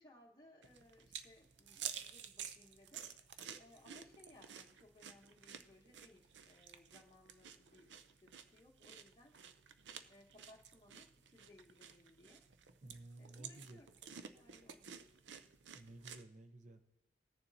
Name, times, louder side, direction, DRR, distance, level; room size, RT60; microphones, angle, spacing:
voice 1, 0.0-3.0 3.6-9.4 10.1-12.5 13.2-14.9, left 1 dB, 20° left, -2 dB, 0.9 m, -64 dB
sound 1, 0.6-16.2, right 8 dB, 90° right, 0.6 m, -52 dB
voice 2, 12.8-13.8 15.7-16.8, right 2 dB, 40° right, 8 dB, 0.6 m, -54 dB
20.5 x 6.9 x 2.7 m, 1.0 s
head